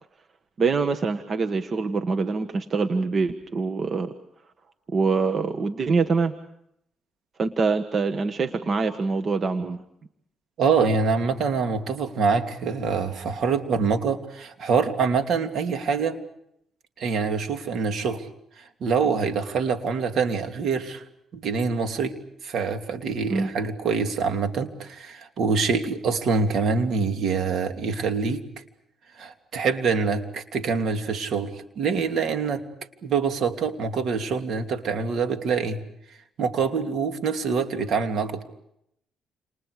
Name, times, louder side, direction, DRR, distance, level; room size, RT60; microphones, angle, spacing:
voice 1, 0.6-4.1 4.9-6.3 7.4-9.8 23.3-23.5, right 4 dB, 45° right, 7 dB, 1.5 m, -24 dB
voice 2, 10.6-16.2 17.0-18.3 18.6-21.0 21.3-28.6 29.2-32.6 33.0-35.8 36.4-38.4, right 5 dB, 65° right, 5 dB, 2.9 m, -25 dB
29.5 x 29.0 x 5.0 m, 0.76 s
cardioid pair, 105°, 0 cm